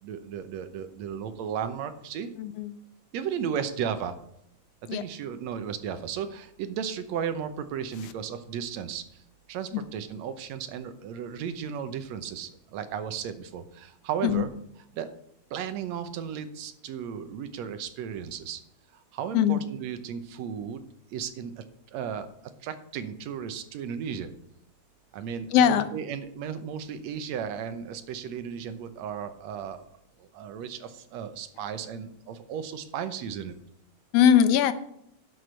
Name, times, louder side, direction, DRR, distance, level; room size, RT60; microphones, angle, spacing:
voice 1, 0.0-2.3 3.1-4.2 4.8-9.2 9.5-14.5 14.9-15.1 15.5-18.6 19.1-20.8 21.1-21.6 21.9-22.3 22.6-24.3 25.1-29.9 30.2-33.6, right 8 dB, 75° right, 10 dB, 2.1 m, -35 dB
voice 2, 2.4-2.7 4.9-5.0 14.2-14.4 19.3-19.6 25.5-25.9 34.1-34.7, left 9 dB, 70° left, 12 dB, 1.6 m, -20 dB
11.5 x 6.3 x 5.7 m, 0.74 s
omnidirectional pair, 3.3 m